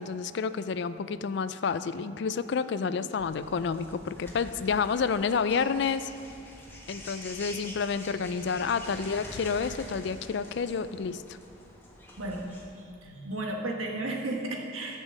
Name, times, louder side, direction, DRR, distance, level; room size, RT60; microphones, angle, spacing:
voice 1, 0.0-6.1 6.9-11.4, left 5 dB, 55° left, 13 dB, 0.3 m, -29 dB
sound 1, 3.2-12.7, left 1 dB, 10° left, 1.2 m, -46 dB
voice 2, 12.2-15.0, right 2 dB, 90° right, 0 dB, 1.4 m, -34 dB
10.5 x 5.4 x 7.4 m, 2.6 s
head